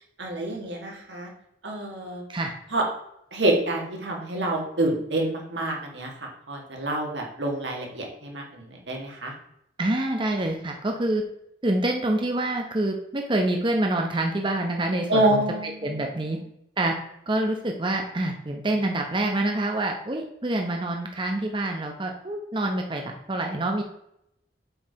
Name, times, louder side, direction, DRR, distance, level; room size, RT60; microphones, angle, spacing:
voice 1, 0.2-1.3 1.6-2.2 2.7-2.8 3.3-9.3 15.1-16.0, right 1 dB, 80° right, 0 dB, 2.0 m, -27 dB
voice 2, 9.8-11.2 11.6-16.4 16.8-17.0 17.3-23.8, right 1 dB, 25° right, 2 dB, 0.8 m, -26 dB
7.7 x 4.7 x 4.7 m, 0.77 s
head